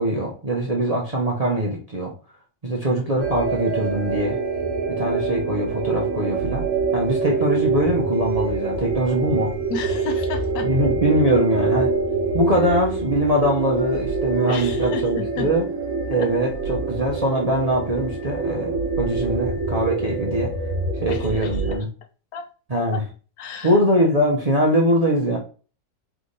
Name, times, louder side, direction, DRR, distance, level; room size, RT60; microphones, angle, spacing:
voice 1, 0.0-2.1 2.6-4.4 4.9-6.7 6.9-9.5 10.6-11.9 12.3-15.6 16.1-18.7 19.0-20.5 21.0-21.9 22.7-23.0 23.6-25.4, right 1 dB, 35° right, -2 dB, 0.7 m, -22 dB
sound 1, 3.2-21.8, right 4 dB, 55° right, 1.2 m, -25 dB
voice 2, 9.7-10.7 12.6-12.8 14.5-15.5 16.2-16.3 21.1-21.6 22.3-22.5 22.9-23.0 23.4-23.7, left 6 dB, 70° left, 7 dB, 1.2 m, -32 dB
3.5 x 3.3 x 4.0 m, 0.37 s
omnidirectional pair, 1.7 m